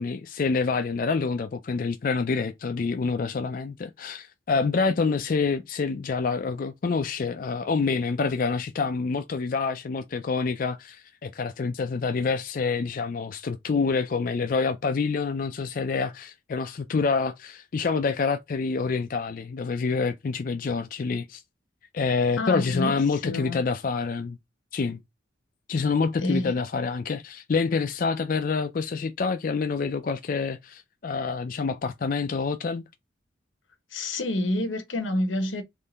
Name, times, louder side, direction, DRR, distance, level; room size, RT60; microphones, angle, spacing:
voice 1, 0.0-21.4 21.9-24.4 24.7-25.0 25.7-32.8, left 4 dB, 45° left, 0.4 m, -27 dB
voice 2, 22.4-23.6 26.2-26.6 33.9-35.6, left 1 dB, 85° left, 1.1 m, -28 dB
3.7 x 3.2 x 4.0 m
head